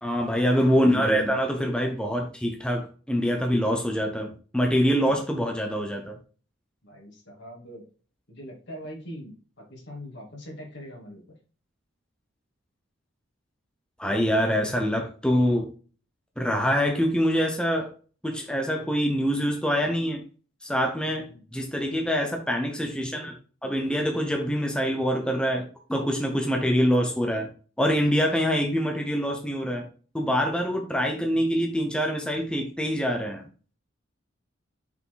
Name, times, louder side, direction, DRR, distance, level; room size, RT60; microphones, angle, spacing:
voice 1, 0.0-6.2 14.0-15.7 16.4-17.9 18.2-20.2 20.6-21.3 21.5-23.3 23.6-27.5 27.8-29.9 30.1-33.4, equal, 5° left, 0.8 m, -25 dB
voice 2, 6.8-7.8 8.3-11.2 21.1-21.4, equal, 60° left, 2.6 m, -42 dB
5.8 x 4.4 x 3.9 m
head